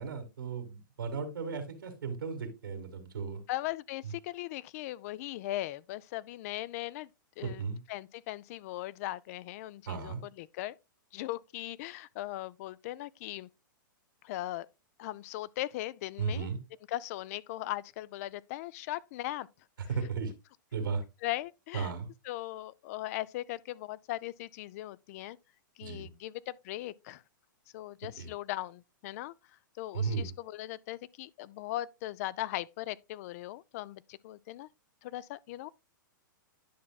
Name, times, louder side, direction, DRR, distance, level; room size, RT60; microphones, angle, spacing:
voice 1, 0.0-3.4 7.4-7.8 9.9-10.2 16.2-16.6 19.9-20.3 20.7-21.0 21.7-22.1 25.8-26.1 28.2-28.3 29.9-30.3, right 5 dB, 85° right, 2.0 m, -35 dB
voice 2, 3.5-7.1 7.4-7.6 7.9-10.7 11.1-13.5 14.2-14.7 15.0-16.5 16.9-19.5 21.2-21.9 22.3-25.4 25.8-27.2 27.7-29.3 29.8-34.7 35.0-35.7, left 15 dB, 45° left, 0.3 m, -39 dB
10.0 x 5.8 x 2.3 m
hypercardioid pair, 125°, 11 cm